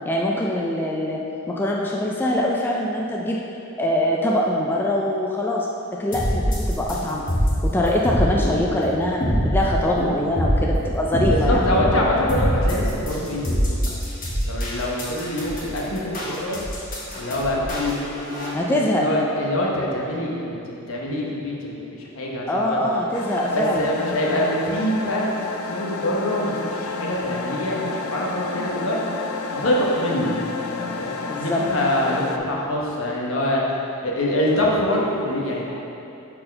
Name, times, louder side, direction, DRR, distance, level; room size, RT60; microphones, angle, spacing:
voice 1, 0.1-3.4 3.8-5.7 6.0-7.2 7.7-9.2 9.5-11.6 18.5-19.1 22.5-23.8 31.3-31.6, left 1 dB, 10° left, -3 dB, 0.3 m, -23 dB
sound 1, 6.1-18.5, equal, 40° left, 1.3 m, -24 dB
voice 2, 11.3-13.6 13.9-14.0 14.5-16.6 17.1-20.6 20.9-22.8 23.5-25.4 25.7-29.0 29.5-33.6 34.0-35.7, left 1 dB, 70° left, -3 dB, 1.0 m, -25 dB
sound 2, 23.1-32.4, left 4 dB, 90° left, 0.4 m, -31 dB
4.3 x 4.3 x 5.2 m, 2.8 s
head